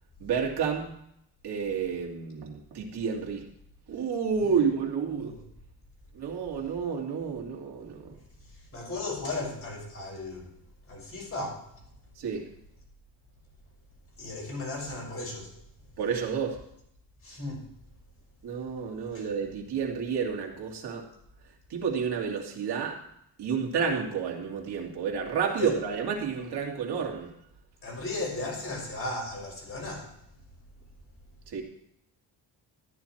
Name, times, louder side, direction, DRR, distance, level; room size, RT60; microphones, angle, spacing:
voice 1, 0.2-0.9 1.4-3.5 3.9-5.3 6.1-8.2 12.2-12.5 16.0-16.6 18.4-21.1 21.7-23.0 23.4-27.3 31.5-31.6, right 6 dB, 65° right, 1 dB, 2.7 m, -30 dB
voice 2, 4.4-4.7 5.1-5.4 8.5-10.5 10.9-11.7 14.2-15.5 17.2-17.7 19.1-19.3 25.6-25.7 27.8-30.1, left 2 dB, 30° left, -2 dB, 5.9 m, -36 dB
14.0 x 9.7 x 4.5 m, 0.73 s
cardioid pair, 160°, 43 cm